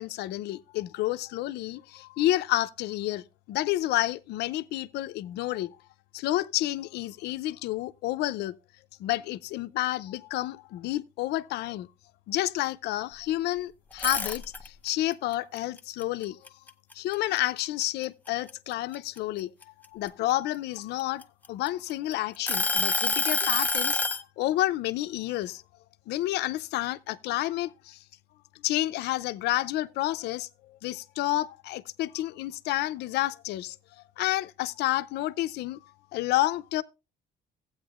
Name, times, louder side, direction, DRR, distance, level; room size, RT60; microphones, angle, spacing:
voice 1, 0.0-5.7 6.1-8.5 9.0-11.9 12.3-16.4 16.9-19.5 19.9-25.6 26.1-28.0 28.6-33.8 34.2-35.8 36.1-36.8, left 15 dB, 80° left, 0.6 m, -30 dB
sound 1, 13.9-14.9 15.3-17.1 17.6-17.8 18.3-20.1 20.8-21.9 22.5-24.2, left 3 dB, 10° left, 0.7 m, -27 dB
15.0 x 8.6 x 2.4 m
cardioid pair, 110°, 17 cm